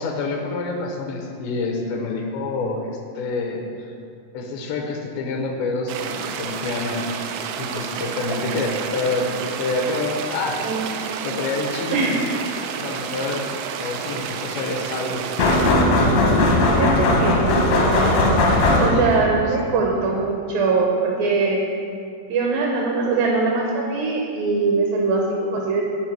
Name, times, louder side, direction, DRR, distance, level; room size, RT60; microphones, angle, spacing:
voice 1, 0.0-3.9 4.3-7.0 7.6-9.3 9.6-10.7 11.2-12.2 12.8-15.3 18.7-19.6, left 3 dB, 90° left, 1 dB, 3.2 m, -27 dB
sound 1, 5.9-15.7, right 7 dB, 90° right, 2.8 m, -30 dB
voice 2, 11.9-12.2 16.7-18.0 18.8-21.6 22.3-25.9, right 4 dB, 75° right, 0 dB, 2.2 m, -22 dB
sound 2, 15.4-19.3, left 2 dB, 75° left, 1.6 m, -18 dB
8.1 x 5.0 x 7.5 m, 2.4 s
omnidirectional pair, 4.8 m